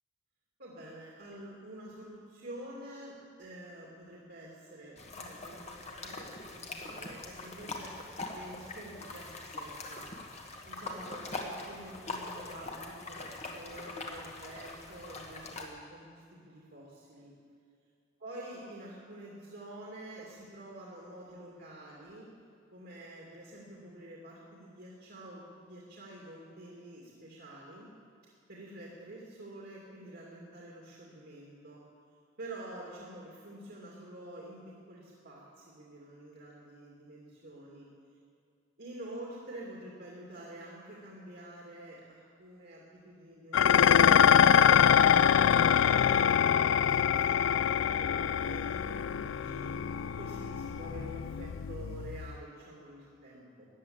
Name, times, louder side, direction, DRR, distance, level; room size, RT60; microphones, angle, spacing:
voice 1, 0.6-10.1 10.7-17.3 18.2-22.3 22.7-27.9 28.2-31.8 32.4-37.9 38.8-46.4 46.8-49.7 50.2-53.7, right 1 dB, 60° right, -4 dB, 2.4 m, -48 dB
sound 1, 5.0-15.6, left 2 dB, 35° left, 1.7 m, -42 dB
Dishes pots and pans, 43.5-52.3, left 8 dB, 85° left, 0.4 m, -24 dB
14.5 x 9.9 x 8.7 m, 2.4 s
head